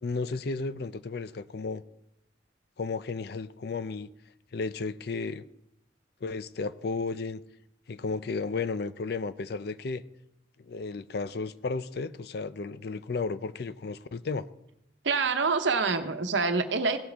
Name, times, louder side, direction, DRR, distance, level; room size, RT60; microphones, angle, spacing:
voice 1, 0.0-1.8 2.8-4.1 4.5-5.4 6.2-7.4 7.9-10.0 10.6-14.5, left 4 dB, 55° left, 15 dB, 0.4 m, -33 dB
voice 2, 15.0-17.0, right 4 dB, 75° right, 8 dB, 1.0 m, -26 dB
17.5 x 7.4 x 3.5 m, 0.82 s
head